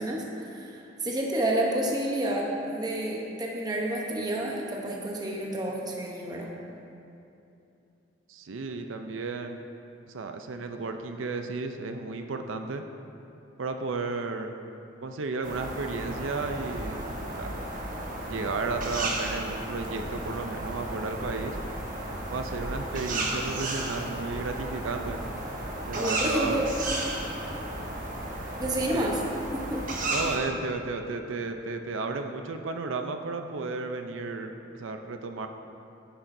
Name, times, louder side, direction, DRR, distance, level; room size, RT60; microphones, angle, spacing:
voice 1, 0.0-6.5 26.0-26.7 28.6-29.2 29.5-29.9, right 1 dB, 20° right, -2 dB, 0.9 m, -30 dB
voice 2, 8.3-9.6 10.1-12.8 13.6-14.5 15.0-17.1 17.3-17.5 18.3-21.6 22.3-25.2 25.9-26.7 28.9-29.1 30.1-35.5, right 3 dB, 85° right, 6 dB, 0.5 m, -33 dB
sound 1, 15.4-30.4, right 1 dB, 45° right, 1.2 m, -34 dB
10.0 x 10.0 x 2.6 m, 2.7 s
head